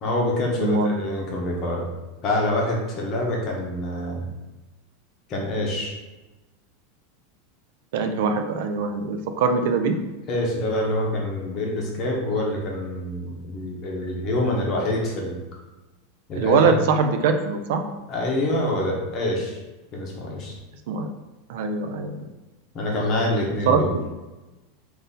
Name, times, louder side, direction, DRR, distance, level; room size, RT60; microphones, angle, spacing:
voice 1, 0.0-1.9 2.2-4.3 5.3-5.9 10.3-15.4 16.3-16.7 18.1-19.6 19.9-20.6 22.7-23.9, left 1 dB, 35° left, -2 dB, 0.9 m, -26 dB
voice 2, 0.6-0.9 7.9-10.0 16.4-17.8 20.9-21.1 21.5-22.3 23.7-23.8, right 5 dB, 65° right, 6 dB, 0.4 m, -22 dB
3.8 x 2.6 x 4.0 m, 1.1 s
supercardioid pair, 155°, 0 cm